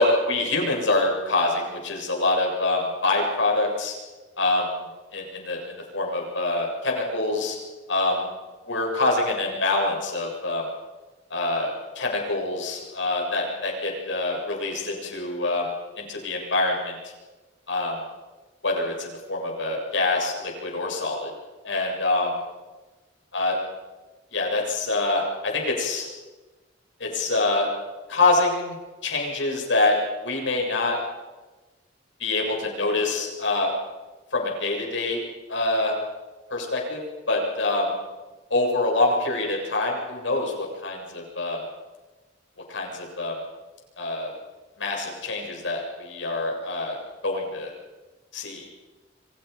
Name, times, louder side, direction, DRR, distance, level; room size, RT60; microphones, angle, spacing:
voice 1, 0.0-3.9 4.4-4.8 5.1-7.6 7.9-8.3 8.7-10.6 11.3-15.7 16.0-17.0 17.7-18.0 18.6-21.3 21.6-22.3 23.3-23.6 24.3-26.1 27.0-27.7 28.1-28.8 29.0-30.0 30.2-31.0 32.2-33.7 34.3-35.2 35.5-36.0 36.5-37.9 38.5-41.6 42.7-43.3 44.0-44.3 44.8-47.0 47.2-47.7 48.3-48.6, left 2 dB, 85° left, 0 dB, 7.4 m, -25 dB
28.5 x 25.0 x 5.4 m, 1.2 s
head